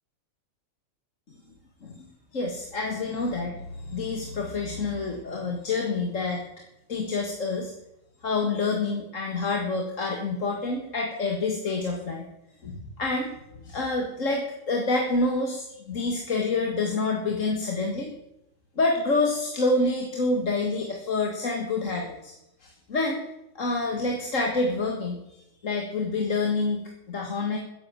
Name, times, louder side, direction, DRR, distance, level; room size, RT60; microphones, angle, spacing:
voice 1, 2.3-6.4 6.9-7.7 8.2-12.3 12.6-18.1 18.8-22.3 22.6-23.2 23.6-27.6, left 3 dB, 65° left, 1 dB, 2.1 m, -27 dB
13.5 x 10.5 x 7.4 m, 0.83 s
omnidirectional pair, 1.4 m